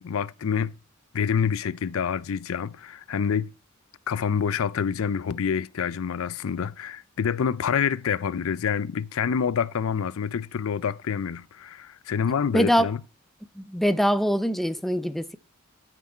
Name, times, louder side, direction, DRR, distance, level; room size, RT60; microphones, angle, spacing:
voice 1, 0.0-0.7 1.1-3.5 4.1-13.0, left 7 dB, 80° left, 0.4 m, -27 dB
voice 2, 12.5-12.9 13.6-15.4, equal, ahead, 0.5 m, -23 dB
13.0 x 6.1 x 4.4 m
head